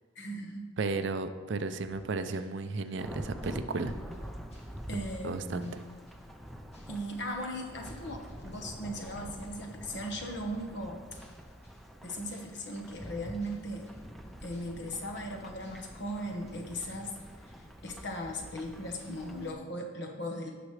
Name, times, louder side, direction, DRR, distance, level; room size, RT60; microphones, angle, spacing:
voice 1, 0.1-0.7 4.9-5.8 6.9-11.2 12.0-13.9 14.4-17.2 17.8-20.5, equal, 55° left, 2 dB, 1.2 m, -38 dB
voice 2, 0.8-3.9 4.9-5.8, right 3 dB, 55° right, 10 dB, 0.5 m, -34 dB
sound 1, 1.7-19.5, equal, 30° left, 2.2 m, -60 dB
Thunderstorm / Rain, 3.0-19.5, equal, ahead, 0.5 m, -46 dB
16.5 x 5.9 x 3.3 m, 1.4 s
head